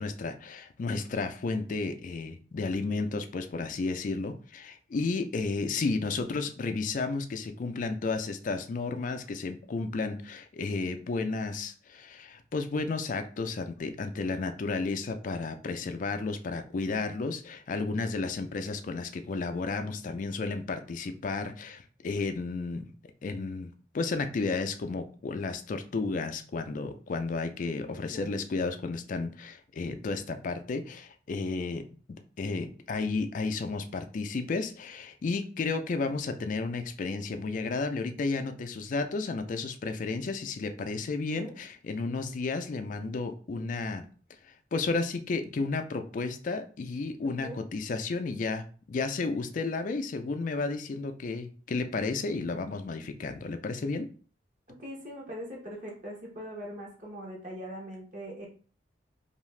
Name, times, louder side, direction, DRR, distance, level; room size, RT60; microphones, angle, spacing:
voice 1, 0.0-22.8 23.2-31.8 32.1-44.1 44.4-54.1, left 3 dB, 45° left, 8 dB, 0.4 m, -32 dB
voice 2, 27.8-28.4 41.3-41.5 43.0-43.1 47.4-47.6 54.8-58.5, equal, 45° right, -3 dB, 0.9 m, -41 dB
2.7 x 2.4 x 3.2 m, 0.40 s
head